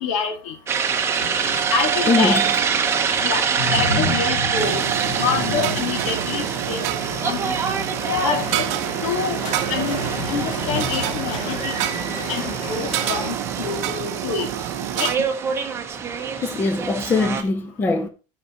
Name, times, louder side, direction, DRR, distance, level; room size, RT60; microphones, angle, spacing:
voice 1, 0.0-0.5 1.7-2.4 3.2-3.4 3.7-4.9 5.2-6.8 7.2-7.8 8.1-8.7 9.0-9.4 9.7-10.0 10.3-11.7 12.3-14.5 15.0-15.1, left 6 dB, 75° left, 2.3 m, -26 dB
sound 1, 0.7-17.4, right 6 dB, 15° right, 0.8 m, -26 dB
sound 2, 1.0-13.3, left 3 dB, 40° left, 2.8 m, -32 dB
voice 2, 2.1-2.4 16.4-18.1, left 3 dB, 10° left, 0.6 m, -21 dB
sound 3, 4.6-15.2, right 13 dB, 45° right, 0.8 m, -28 dB
12.5 x 5.4 x 3.9 m
cardioid pair, 180°, 16 cm